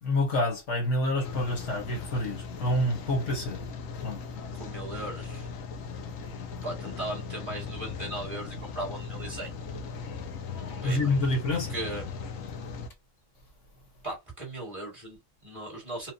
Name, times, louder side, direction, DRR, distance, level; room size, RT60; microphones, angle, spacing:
voice 1, 0.0-3.6 4.0-4.2 10.8-11.7, left 1 dB, 65° left, 1.6 m, -28 dB
Rain, 1.2-12.9, left 5 dB, 85° left, 1.2 m, -38 dB
voice 2, 4.6-5.5 6.6-9.8 10.6-11.0 11.7-12.0 14.0-16.1, right 1 dB, 25° right, 2.2 m, -38 dB
4.7 x 2.5 x 2.6 m
omnidirectional pair, 1.4 m